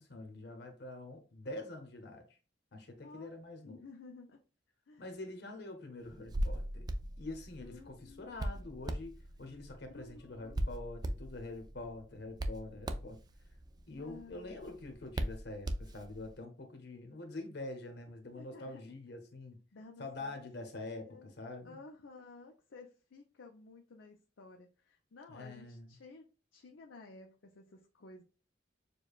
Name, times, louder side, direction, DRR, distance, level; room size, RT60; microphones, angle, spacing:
voice 1, 0.0-2.4 2.7-3.8 5.0-6.9 7.2-13.2 13.9-19.6 20.0-21.8 25.3-25.9, left 2 dB, 65° left, 0.9 m, -45 dB
voice 2, 3.0-3.3 3.6-4.4 4.9-5.1 6.3-6.5 7.6-8.7 9.8-10.8 13.9-14.6 18.3-18.8 19.7-20.4 21.0-21.3 21.6-26.3 26.5-28.2, left 3 dB, 90° left, 0.6 m, -54 dB
Hands, 6.1-16.3, right 1 dB, 20° right, 0.3 m, -40 dB
6.7 x 2.2 x 2.3 m
head